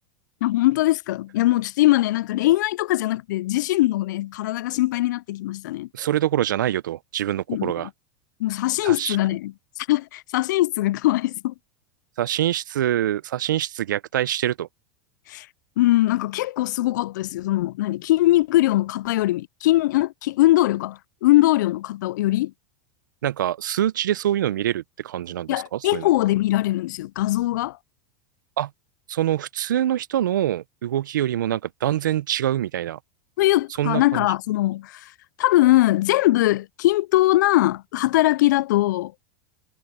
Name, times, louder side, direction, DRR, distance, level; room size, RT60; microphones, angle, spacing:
voice 1, 0.4-5.9 7.5-7.7 8.4-11.5 15.3-15.5 15.8-22.5 25.5-27.8 33.4-35.1 35.4-39.1, left 16 dB, 75° left, 0.4 m, -21 dB
voice 2, 5.9-7.9 8.8-9.2 12.2-14.7 23.2-26.1 28.6-28.7 29.1-33.0 33.8-34.3, right 12 dB, 80° right, 0.9 m, -25 dB
hypercardioid pair, 95°, 10 cm